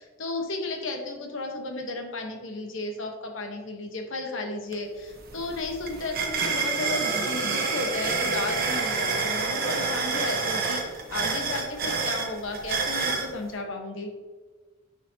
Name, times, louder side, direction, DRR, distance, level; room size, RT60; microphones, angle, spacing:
voice 1, 0.0-14.1, left 2 dB, 70° left, 3 dB, 1.0 m, -33 dB
sound 1, 4.7-4.8 5.1-13.3, right 4 dB, 50° right, 1.0 m, -28 dB
9.8 x 5.1 x 2.8 m, 1.4 s
head